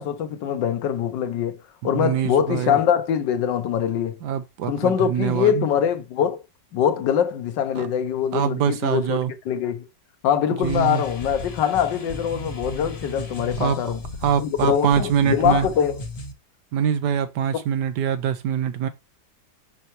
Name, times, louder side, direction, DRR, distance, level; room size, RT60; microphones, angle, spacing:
voice 1, 0.0-1.6 1.8-4.1 4.7-6.4 6.7-9.2 9.5-9.8 10.2-14.0 14.4-16.0 17.5-17.6, left 9 dB, 90° left, 1.5 m, -23 dB
voice 2, 1.9-2.8 4.2-5.7 7.8-7.9 8.3-9.3 10.6-11.0 13.6-13.8 14.2-15.7 16.7-18.9, right 8 dB, 75° right, 1.3 m, -24 dB
sound 1, 10.6-16.3, left 2 dB, 65° left, 0.3 m, -35 dB
5.7 x 5.6 x 3.0 m
omnidirectional pair, 1.9 m